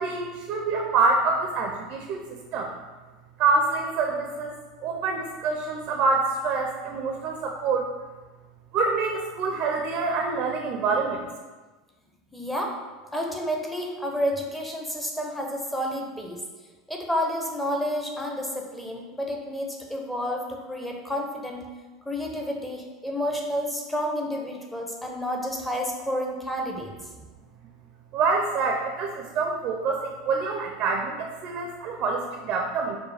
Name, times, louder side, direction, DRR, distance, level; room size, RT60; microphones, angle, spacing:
voice 1, 0.0-2.2 2.5-2.7 3.4-4.6 4.8-7.9 8.7-11.3 28.1-33.0, right 4 dB, 50° right, 2 dB, 0.4 m, -26 dB
voice 2, 12.3-12.8 13.1-16.4 16.9-21.6 22.1-26.9, equal, 5° left, 1 dB, 0.7 m, -30 dB
4.6 x 2.2 x 3.3 m, 1.3 s
hypercardioid pair, 95°, 2 cm